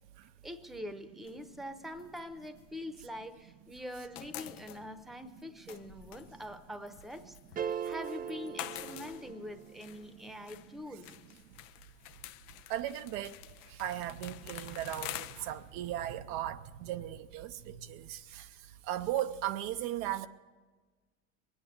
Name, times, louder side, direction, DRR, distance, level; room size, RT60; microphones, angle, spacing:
voice 1, 0.4-11.1, left 1 dB, ahead, 0.9 m, -44 dB
sound 1, 1.3-3.5 3.8-19.2, left 14 dB, 65° left, 0.7 m, -49 dB
sound 2, 7.6-9.8, right 8 dB, 20° right, 0.4 m, -39 dB
voice 2, 12.7-13.4 13.7-20.3, right 12 dB, 65° right, 0.7 m, -37 dB
22.5 x 8.9 x 6.8 m
hypercardioid pair, 90°, 40 cm